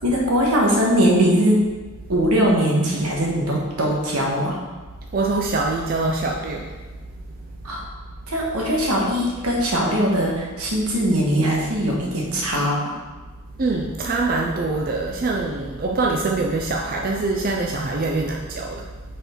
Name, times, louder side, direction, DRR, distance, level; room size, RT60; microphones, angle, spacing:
voice 1, 0.0-1.6 2.1-4.6 7.6-7.8 8.3-12.9, equal, 85° right, -2 dB, 1.4 m, -20 dB
voice 2, 5.1-7.0 7.3-7.4 13.6-18.9, right 3 dB, 40° right, 0 dB, 0.4 m, -24 dB
5.6 x 4.3 x 4.4 m, 1.3 s
head